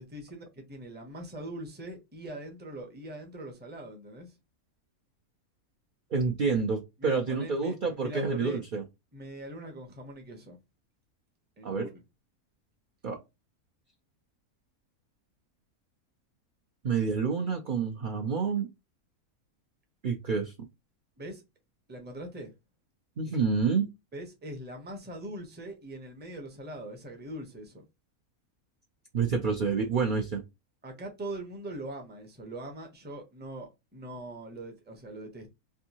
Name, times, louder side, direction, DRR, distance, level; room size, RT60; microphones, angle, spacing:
voice 1, 0.0-4.4 7.0-8.6 9.1-10.6 11.6-12.0 21.2-21.4 21.9-22.5 24.1-27.8 30.8-35.5, right 1 dB, 10° right, 0.5 m, -42 dB
voice 2, 6.1-8.8 11.6-11.9 13.0-13.2 16.8-18.7 20.0-20.5 23.2-23.9 29.1-30.4, right 5 dB, 60° right, 0.5 m, -28 dB
3.5 x 2.6 x 2.8 m
omnidirectional pair, 1.6 m